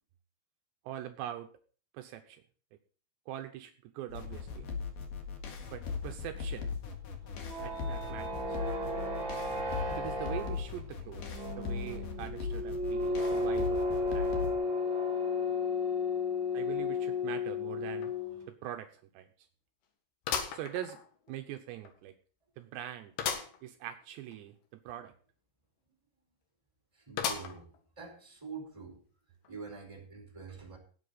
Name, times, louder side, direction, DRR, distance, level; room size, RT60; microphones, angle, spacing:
voice 1, 0.8-1.5 1.9-2.4 3.3-4.7 5.7-6.8 7.6-8.6 9.9-14.5 16.5-18.1 18.5-19.5 20.5-21.0 21.3-22.1 22.6-23.1 23.6-25.1, right 12 dB, 80° right, 6 dB, 2.9 m, -43 dB
sound 1, 4.1-14.5, left 5 dB, 55° left, 3.1 m, -39 dB
sound 2, 7.2-18.5, left 3 dB, 40° right, 4.9 m, -33 dB
sound 3, 18.0-18.1 18.6-18.7 20.3-21.4 21.9-22.0 23.2-23.6 24.0-24.1 24.3-24.4 27.2-27.8 28.4-28.5 29.5-29.6, left 7 dB, 70° left, 3.6 m, -35 dB
voice 2, 26.9-27.7 28.0-29.0 29.5-30.8, right 5 dB, 5° right, -1 dB, 4.1 m, -45 dB
18.0 x 8.6 x 4.1 m, 0.42 s
omnidirectional pair, 5.2 m